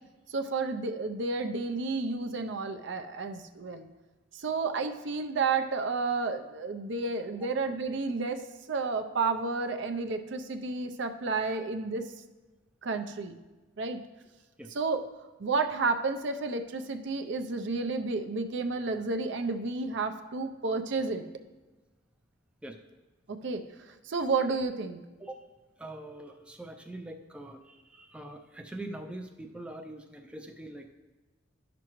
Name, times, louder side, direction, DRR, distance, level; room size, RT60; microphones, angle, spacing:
voice 1, 0.3-3.9 4.3-8.4 8.7-12.0 12.8-13.4 13.8-14.0 14.7-15.0 15.4-21.2 23.3-23.6 24.1-25.0, right 4 dB, 60° right, 7 dB, 0.5 m, -31 dB
voice 2, 25.8-30.9, right 1 dB, 5° right, 4 dB, 0.3 m, -43 dB
11.0 x 6.0 x 3.0 m, 1.2 s
head